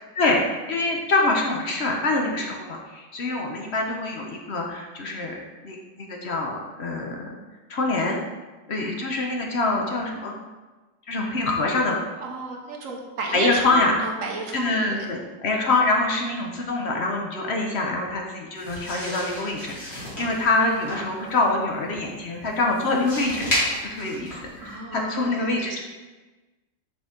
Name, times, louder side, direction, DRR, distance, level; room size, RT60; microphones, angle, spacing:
voice 1, 0.2-5.3 5.6-7.3 7.7-8.2 8.7-10.4 11.1-12.0 13.3-14.0 14.5-25.8, left 2 dB, 55° left, 0 dB, 0.7 m, -25 dB
voice 2, 12.2-15.1 24.6-25.8, right 3 dB, 55° right, 0 dB, 1.1 m, -32 dB
sound 1, 18.6-24.7, equal, 35° left, 2.6 m, -33 dB
6.1 x 5.2 x 3.7 m, 1.2 s
omnidirectional pair, 2.0 m